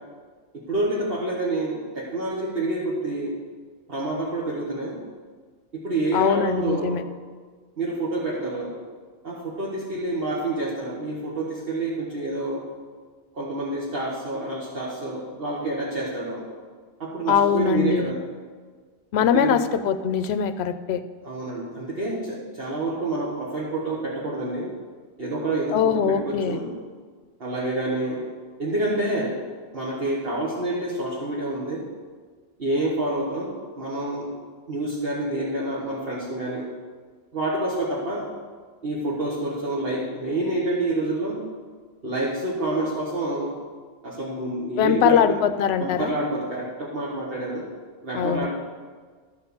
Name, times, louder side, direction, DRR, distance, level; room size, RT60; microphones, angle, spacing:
voice 1, 0.5-3.3 3.9-5.0 5.7-7.0 7.8-8.7 9.2-12.6 13.3-16.4 17.0-18.2 19.2-19.6 21.2-24.7 25.2-26.7 27.4-28.2 28.6-29.4 29.7-31.8 32.6-34.3 34.7-36.7 37.3-38.3 38.8-41.4 42.0-43.6 44.0-45.4 45.8-47.7 48.0-48.5, right 2 dB, 55° right, -6 dB, 1.6 m, -28 dB
voice 2, 6.1-7.0 17.3-18.1 19.1-21.0 25.7-26.6 44.8-46.1 48.1-48.5, left 8 dB, 70° left, 11 dB, 0.8 m, -22 dB
13.0 x 4.4 x 6.9 m, 1.5 s
omnidirectional pair, 1.2 m